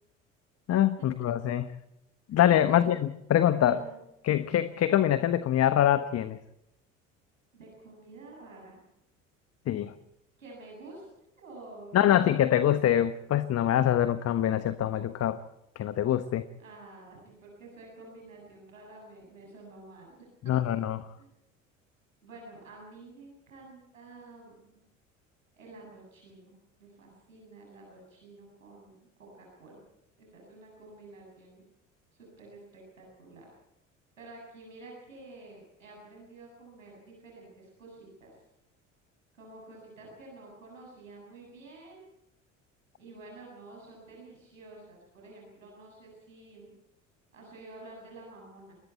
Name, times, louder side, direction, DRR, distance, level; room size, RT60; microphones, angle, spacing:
voice 1, 0.7-1.6 2.3-3.8 4.2-6.4 9.7-9.9 11.9-15.4 15.7-16.4 20.5-21.0, left 11 dB, 40° left, 12 dB, 1.2 m, -24 dB
voice 2, 3.7-4.0 7.5-8.8 10.4-11.1 11.4-12.5 16.6-20.7 21.2-21.3 22.2-24.8 25.5-29.8 30.2-31.6 32.1-33.5 34.2-38.4 39.4-42.1 43.0-46.8 47.3-48.8, right 2 dB, 85° right, -1 dB, 7.4 m, -50 dB
28.5 x 21.5 x 4.5 m, 0.85 s
figure-of-eight pair, 60°, 38 cm